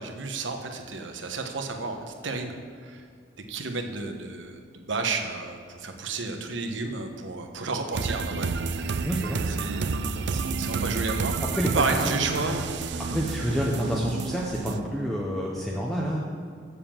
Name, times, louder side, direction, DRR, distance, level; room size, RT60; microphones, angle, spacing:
voice 1, 0.0-2.6 2.8-3.0 3.5-9.0 9.4-11.3 11.7-12.7 12.9-13.0 13.7-13.8, right 3 dB, 80° right, 5 dB, 1.0 m, -32 dB
sound 1, 7.9-14.8, right 4 dB, 65° right, 0.5 m, -30 dB
voice 2, 9.0-9.4 11.5-11.8 12.4-12.5 13.0-16.2, equal, ahead, -4 dB, 0.7 m, -28 dB
7.5 x 6.8 x 7.2 m, 2.2 s
head